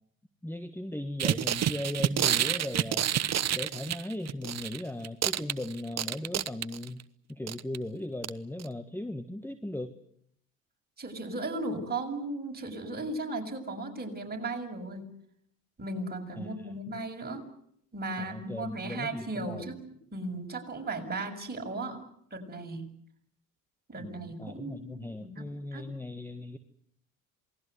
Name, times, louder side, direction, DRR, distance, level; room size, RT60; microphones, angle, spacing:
voice 1, 0.4-3.1 3.5-7.0 7.3-9.9 16.4-17.0 18.2-19.7 24.0-26.6, left 1 dB, 5° left, 9 dB, 1.7 m, -38 dB
sound 1, 1.2-4.8 5.0-7.0 7.5-7.8 8.2-8.3 8.6-8.7, right 10 dB, 40° right, 1.1 m, -28 dB
voice 2, 11.0-15.1 15.8-17.5 17.9-19.8 20.1-22.9 23.9-25.4 25.7-25.9, right 2 dB, 25° right, 3 dB, 6.9 m, -36 dB
27.5 x 20.5 x 8.1 m, 0.71 s
hypercardioid pair, 60°, 40 cm